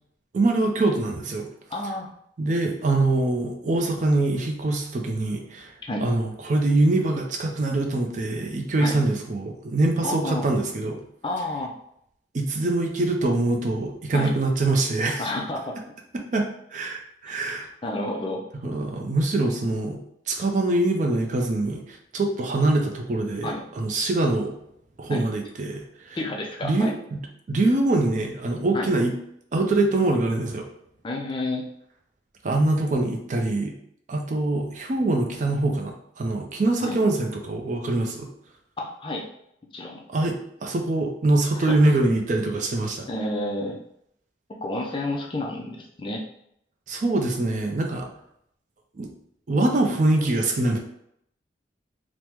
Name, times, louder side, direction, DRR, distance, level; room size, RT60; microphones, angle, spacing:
voice 1, 0.3-1.5 2.4-5.7 6.0-11.0 12.3-15.3 16.3-17.7 18.6-24.5 25.0-26.2 26.6-27.2 27.5-29.1 29.5-30.7 32.4-33.7 34.1-38.3 40.1-43.1 46.9-48.1 49.0-49.1 49.5-50.8, right 2 dB, 40° right, 2 dB, 0.4 m, -24 dB
voice 2, 1.7-2.1 5.8-6.0 8.8-9.0 10.0-10.4 11.2-11.7 14.1-14.4 15.2-15.8 17.3-17.4 17.8-18.4 23.4-23.7 25.1-25.2 26.2-26.9 28.7-28.9 31.0-31.6 36.8-37.0 38.8-39.3 39.7-40.0 41.6-41.7 43.1-43.8 44.5-46.2, left 1 dB, 25° left, 1 dB, 0.3 m, -30 dB
3.4 x 2.0 x 2.9 m, 0.73 s
head